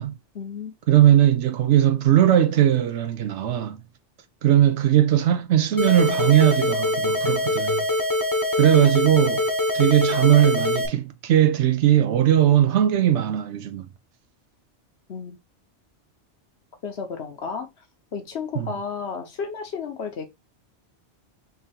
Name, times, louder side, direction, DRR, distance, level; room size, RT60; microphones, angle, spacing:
voice 1, 0.3-0.7 15.1-15.4 16.8-17.7 18.1-20.3, left 6 dB, 65° left, 1.2 m, -32 dB
voice 2, 0.9-3.8 4.4-7.9 8.6-9.4 9.7-13.9 18.6-18.7, right 11 dB, 80° right, 0.9 m, -19 dB
sound 1, 5.8-10.9, left 1 dB, 20° left, 0.8 m, -24 dB
4.6 x 2.8 x 3.5 m
omnidirectional pair, 1.2 m